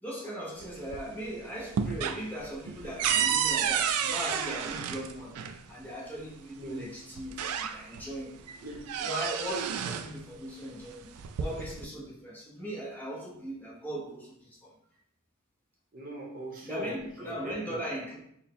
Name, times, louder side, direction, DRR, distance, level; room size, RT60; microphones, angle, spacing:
voice 1, 0.0-8.3 9.0-14.7 16.6-18.2, equal, 10° left, -6 dB, 0.7 m, -39 dB
sound 1, 0.6-1.2 1.6-5.6 6.7-6.8 7.2-8.1 8.5-10.1 11.0-11.8, right 8 dB, 85° right, 0.3 m, -31 dB
voice 2, 6.6-6.9 8.0-8.9 15.9-17.0 17.2-17.8, right 1 dB, 40° right, -1 dB, 0.8 m, -41 dB
4.3 x 2.1 x 3.6 m, 0.72 s
head